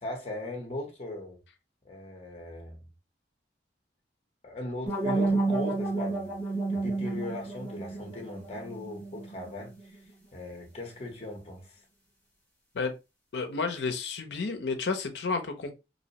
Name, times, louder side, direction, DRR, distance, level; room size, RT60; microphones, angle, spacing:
voice 1, 0.0-1.4 1.8-2.8 4.4-6.4 6.7-10.0 10.3-11.8, left 1 dB, 35° left, 0.7 m, -39 dB
sound 1, 4.9-9.8, right 3 dB, 5° left, 0.9 m, -31 dB
voice 2, 13.3-15.7, left 4 dB, 70° left, 0.5 m, -31 dB
2.6 x 2.0 x 2.7 m
head